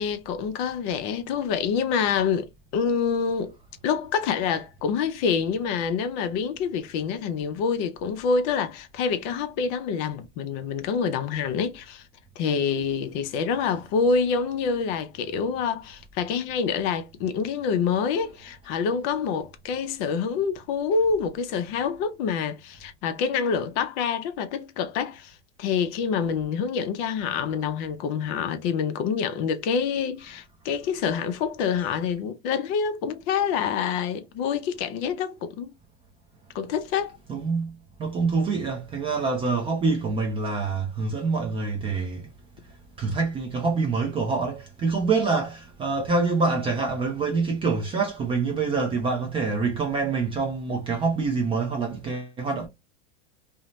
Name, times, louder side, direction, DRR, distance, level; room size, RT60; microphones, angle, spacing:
voice 1, 0.0-3.6 3.8-12.0 12.4-35.7 36.5-37.2, left 6 dB, 40° left, 0.5 m, -27 dB
voice 2, 37.3-37.7 38.0-42.2 43.0-52.7, right 4 dB, 15° right, 0.3 m, -26 dB
2.7 x 2.1 x 3.0 m
supercardioid pair, 130°, 36 cm